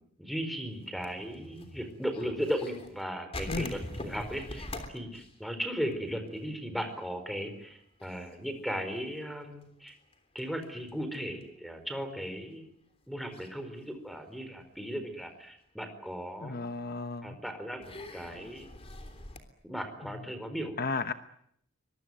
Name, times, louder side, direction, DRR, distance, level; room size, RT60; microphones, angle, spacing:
voice 1, 0.0-9.9 10.3-12.6 13.1-16.7 17.2-18.7 19.6-20.8, equal, ahead, 9 dB, 4.3 m, -37 dB
sound 1, 0.8-3.0 3.3-6.6 6.8-7.0 7.4-7.7 8.0-11.4 12.2-12.3 13.3-13.6 14.1-14.8 15.3-15.4 16.7-16.8 17.8-19.4, left 1 dB, 30° left, 3.4 m, -44 dB
voice 2, 16.4-17.4 20.8-21.1, left 3 dB, 50° left, 10 dB, 1.0 m, -33 dB
24.5 x 22.0 x 9.4 m, 0.70 s
head